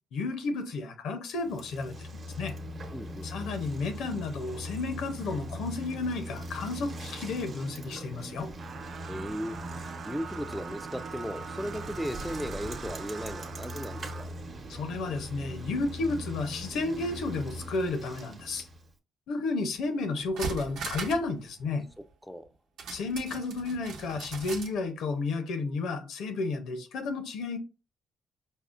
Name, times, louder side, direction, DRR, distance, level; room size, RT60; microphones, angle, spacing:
voice 1, 0.1-2.1 2.4-2.5 3.2-8.5 14.7-18.7 19.3-21.8 22.9-27.6, left 3 dB, 80° left, 0.7 m, -32 dB
Bicycle, 1.4-18.9, equal, 45° right, 0.8 m, -41 dB
voice 2, 2.9-3.3 9.1-9.6 10.0-14.3 22.3-22.5, equal, ahead, 0.3 m, -36 dB
sound 1, 8.6-14.3, right 6 dB, 60° right, 0.5 m, -43 dB
sound 2, 19.7-19.8 20.2-21.3 21.6-21.7 22.8-24.8 25.1-25.2, right 4 dB, 80° right, 0.8 m, -38 dB
5.3 x 2.1 x 2.4 m
cardioid pair, 90°, 0 cm